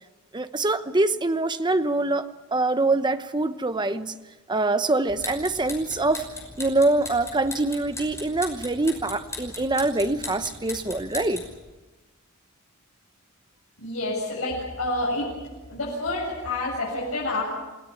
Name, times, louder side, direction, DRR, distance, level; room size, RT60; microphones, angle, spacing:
voice 1, 0.3-4.2 4.5-6.3 6.6-11.4, right 2 dB, 20° right, 11 dB, 0.9 m, -24 dB
sound 1, 5.1-11.6, left 2 dB, 15° left, 5.8 m, -38 dB
voice 2, 13.8-15.3 15.7-17.4, left 2 dB, 70° left, -6 dB, 7.7 m, -28 dB
28.5 x 18.0 x 8.6 m, 1.1 s
head